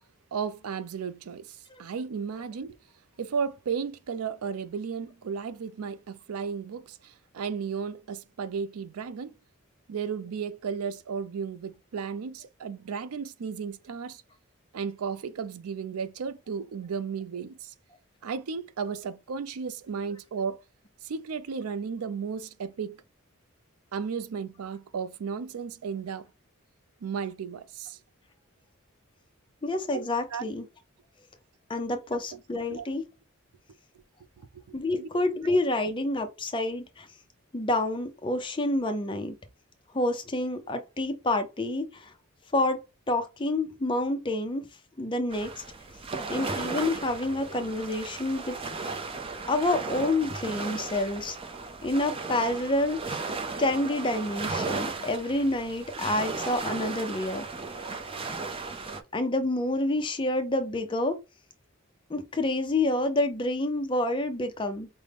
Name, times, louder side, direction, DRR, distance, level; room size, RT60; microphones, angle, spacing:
voice 1, 0.3-2.8 3.2-9.4 9.9-14.2 14.7-17.7 18.2-20.6 21.0-23.0 23.9-26.3 27.0-28.0 29.9-30.0 30.3-30.4 32.3-32.4 32.7-32.9 34.5-34.6 34.9-35.1, right 6 dB, 90° right, 0.4 m, -34 dB
voice 2, 29.6-30.7 31.7-33.0 34.7-37.1 37.5-39.3 39.9-42.1 42.5-42.8 43.1-44.7 45.0-45.6 46.3-48.9 49.5-51.4 51.8-53.2 53.6-57.5 59.1-61.2 62.1-64.9, left 2 dB, 20° left, 0.5 m, -28 dB
sound 1, 45.3-59.0, right 3 dB, 25° right, 0.5 m, -35 dB
5.2 x 2.1 x 3.3 m
head